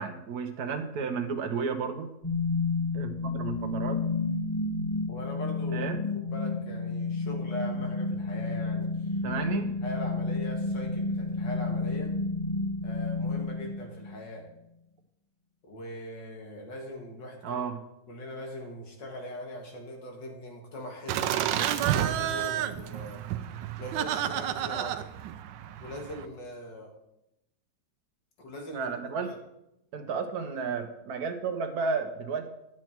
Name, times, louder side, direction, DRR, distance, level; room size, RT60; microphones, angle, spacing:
voice 1, 0.0-2.1 2.9-4.0 5.7-6.0 9.2-9.7 17.4-17.8 28.7-29.3 29.9-32.5, right 5 dB, 60° right, 6 dB, 1.4 m, -32 dB
sound 1, 2.2-14.2, left 3 dB, 20° left, 0.8 m, -31 dB
voice 2, 5.1-12.1 12.8-14.5 15.6-17.7 18.1-23.2 23.8-25.1 25.8-26.9 28.4-28.9 29.2-29.4, left 1 dB, 75° left, 1 dB, 2.5 m, -41 dB
Laughter, 21.1-26.3, right 11 dB, 90° right, 1.3 m, -30 dB
11.0 x 7.4 x 4.5 m, 0.85 s
omnidirectional pair, 2.0 m